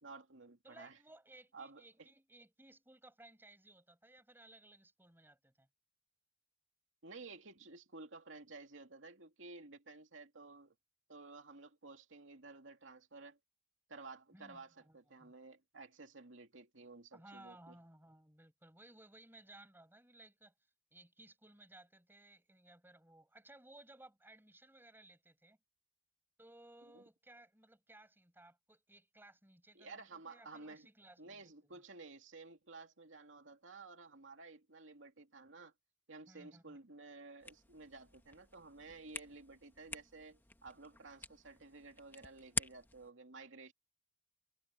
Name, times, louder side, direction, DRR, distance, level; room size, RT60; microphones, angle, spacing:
voice 1, 0.0-1.0 1.5-2.1 7.0-10.7 11.1-13.4 13.9-17.7 26.9-27.0 29.7-30.9 31.2-35.7 36.1-43.7, right 3 dB, 80° right, 2.5 m, -53 dB
voice 2, 0.6-5.7 14.3-15.3 17.1-20.5 20.9-25.6 26.4-31.8 36.3-36.8, right 1 dB, 10° right, 5.9 m, -60 dB
sound 1, 37.4-43.1, left 3 dB, 10° left, 1.4 m, -47 dB
head